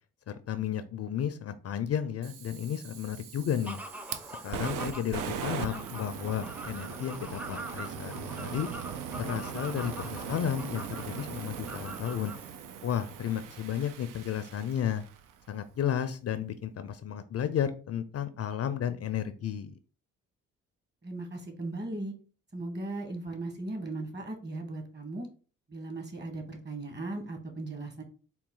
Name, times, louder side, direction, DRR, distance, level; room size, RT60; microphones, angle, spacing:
voice 1, 0.3-3.8 4.3-8.7 9.1-12.3 12.8-15.0 15.5-19.7, left 9 dB, 50° left, 12 dB, 0.5 m, -33 dB
Fire, 2.2-15.3, right 7 dB, 70° right, 0.6 m, -40 dB
Fowl, 3.6-12.5, right 1 dB, 5° right, 0.5 m, -44 dB
voice 2, 21.0-22.1 22.5-25.3 25.7-28.0, right 2 dB, 30° right, 4 dB, 1.6 m, -37 dB
4.1 x 2.3 x 3.8 m, 0.37 s
supercardioid pair, 60°, 33 cm